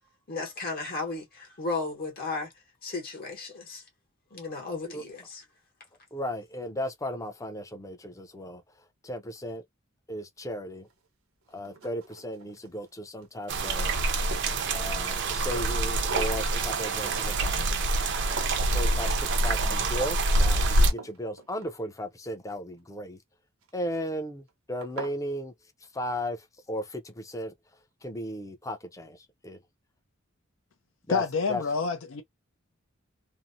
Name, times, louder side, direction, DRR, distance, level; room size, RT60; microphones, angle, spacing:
voice 1, 0.3-2.5 2.8-3.8 4.3-5.4, left 3 dB, 45° left, 1.0 m, -34 dB
voice 2, 6.1-8.6 9.0-9.6 10.1-10.9 11.5-14.0 14.7-17.7 18.7-23.2 23.7-25.5 25.9-26.4 26.7-27.5 28.0-29.2 29.4-29.6 31.1-31.2 31.5-31.6, equal, 15° left, 0.5 m, -35 dB
sound 1, 10.9-11.0 11.5-12.9 13.2-14.6 15.1-18.1 18.3-18.7 19.2-19.5 19.8-20.1 20.6-22.1 23.6-24.0 24.5-24.6 24.8-25.2, right 3 dB, 85° right, 0.8 m, -43 dB
sound 2, 13.5-20.9, right 2 dB, 60° right, 0.5 m, -26 dB
voice 3, 31.1-32.2, left 4 dB, 70° left, 0.5 m, -28 dB
2.7 x 2.0 x 2.5 m
head